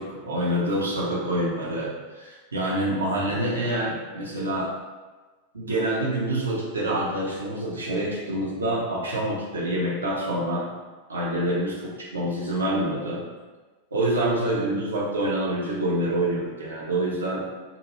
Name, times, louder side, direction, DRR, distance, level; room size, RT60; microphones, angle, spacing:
voice 1, 0.0-4.7 5.5-10.7 11.1-13.2 13.9-17.4, right 1 dB, 75° right, -4 dB, 0.7 m, -26 dB
2.7 x 2.5 x 2.8 m, 1.3 s
figure-of-eight pair, 90°, 0 cm